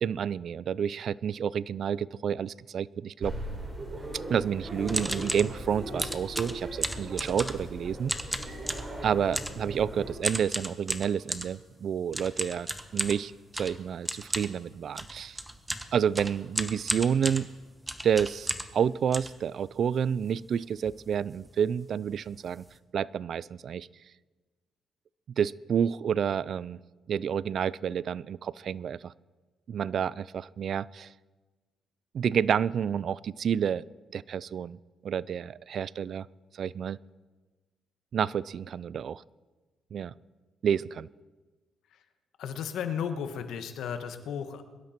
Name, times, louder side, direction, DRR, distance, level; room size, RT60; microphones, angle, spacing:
voice 1, 0.0-3.3 4.1-8.1 9.0-12.7 12.9-13.3 13.6-15.4 15.9-17.5 18.0-22.6 22.9-23.9 25.4-26.8 27.1-29.1 29.7-31.1 32.1-33.8 34.1-36.3 36.6-37.0 38.1-39.2 39.9-40.1 40.6-41.1, right 8 dB, 60° right, 21 dB, 0.4 m, -29 dB
sound 1, 3.2-10.1, right 1 dB, 25° right, 4.8 m, -38 dB
sound 2, 4.9-5.5 6.0-7.7 8.1-8.9 9.3-9.6 10.2-11.5 12.1-18.8 19.1-20.0 20.5-20.6 20.7-21.0 21.3-21.5 22.1-22.2 22.4-22.7, right 1 dB, 10° right, 1.2 m, -34 dB
voice 2, 42.4-44.7, left 7 dB, 75° left, 8 dB, 1.5 m, -34 dB
22.0 x 12.0 x 4.5 m, 1.3 s
cardioid pair, 90°, 0 cm